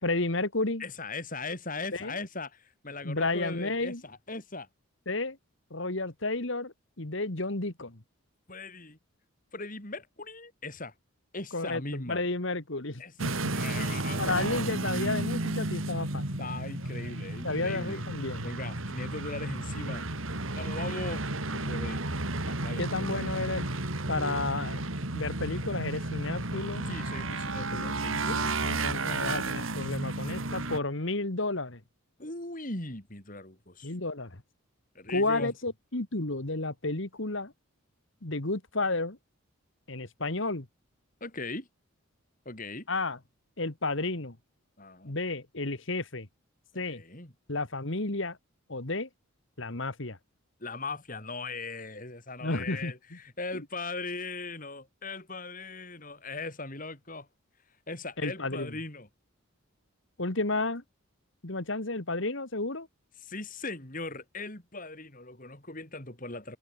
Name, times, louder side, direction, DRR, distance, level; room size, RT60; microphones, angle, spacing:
voice 1, 0.0-0.8 1.9-2.1 3.0-4.0 5.1-5.4 5.7-8.0 11.5-13.3 14.2-16.2 17.4-18.5 22.5-23.7 24.1-24.8 25.1-26.9 27.5-27.9 28.3-31.8 33.8-34.4 35.1-37.5 38.2-39.2 39.9-40.7 42.9-43.2 43.6-44.4 45.0-46.3 46.8-47.0 47.5-48.4 48.7-49.1 49.6-50.2 52.4-52.9 53.5-53.6 58.2-58.7 60.2-60.8 61.4-62.9, left 2 dB, 60° left, 2.0 m, -32 dB
voice 2, 0.8-4.7 8.5-9.0 9.5-10.9 11.3-12.2 13.0-14.8 16.4-18.0 18.4-20.0 20.6-21.2 21.5-22.0 22.6-22.8 26.9-28.7 29.0-29.6 32.2-33.9 34.9-35.5 41.2-41.7 42.5-42.9 44.8-45.1 46.9-47.3 50.6-57.3 57.9-59.1 63.2-66.6, left 3 dB, 40° left, 4.1 m, -39 dB
sound 1, 13.2-30.8, right 2 dB, 70° right, 3.1 m, -32 dB
head